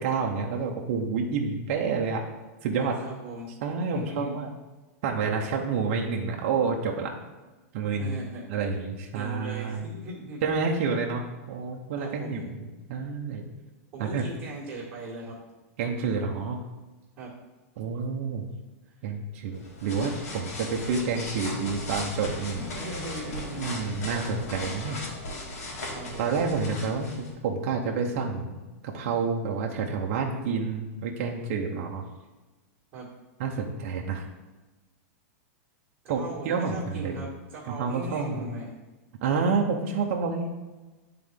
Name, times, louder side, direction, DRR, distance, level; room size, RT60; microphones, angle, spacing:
voice 1, 0.0-2.3 2.6-3.0 3.6-4.5 5.0-7.1 7.7-8.2 8.5-9.9 10.4-13.4 14.0-14.2 15.8-16.6 17.8-18.4 19.0-22.7 23.6-25.0 26.2-28.6 28.8-32.0 33.4-34.3 36.1-37.2 37.7-38.5 39.2-40.5, right 5 dB, 50° right, 0 dB, 0.8 m, -29 dB
voice 2, 2.8-3.5 3.9-4.4 8.0-8.4 9.1-10.4 12.0-12.5 13.9-15.4 17.2-17.4 22.6-23.6 25.9-26.4 32.9-33.1 36.0-38.7, right 2 dB, 25° right, -8 dB, 1.8 m, -39 dB
sound 1, 19.5-27.3, left 1 dB, 80° left, 2.1 m, -37 dB
9.9 x 3.8 x 3.6 m, 1.2 s
supercardioid pair, 165°, 8 cm